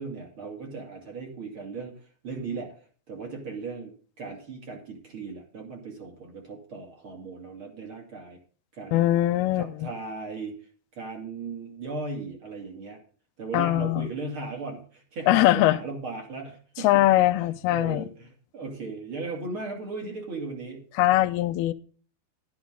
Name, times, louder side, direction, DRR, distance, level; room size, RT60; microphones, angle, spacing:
voice 1, 0.0-2.7 3.1-8.4 8.7-9.1 9.5-10.6 10.9-13.0 13.4-17.0 17.7-20.8, right 3 dB, 35° right, 3.1 m, -37 dB
voice 2, 8.9-9.9 13.5-14.1 15.3-15.8 16.8-18.0 21.0-21.7, left 15 dB, 90° left, 2.6 m, -21 dB
12.5 x 11.5 x 3.7 m
omnidirectional pair, 4.3 m